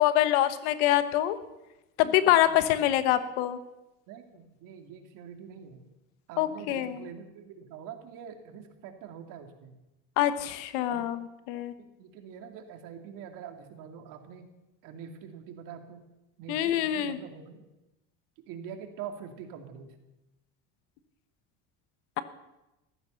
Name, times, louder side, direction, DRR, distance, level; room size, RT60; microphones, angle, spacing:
voice 1, 0.0-1.4 2.0-3.6 6.4-7.0 10.2-11.7 16.5-17.2, left 12 dB, 85° left, 11 dB, 1.3 m, -25 dB
voice 2, 2.0-3.1 4.1-5.8 6.3-9.8 10.9-11.1 11.8-14.5 14.8-16.0 16.4-17.6 18.5-19.9, right 7 dB, 70° right, 4 dB, 2.6 m, -45 dB
14.5 x 13.5 x 6.6 m, 1.0 s
supercardioid pair, 115°, 34 cm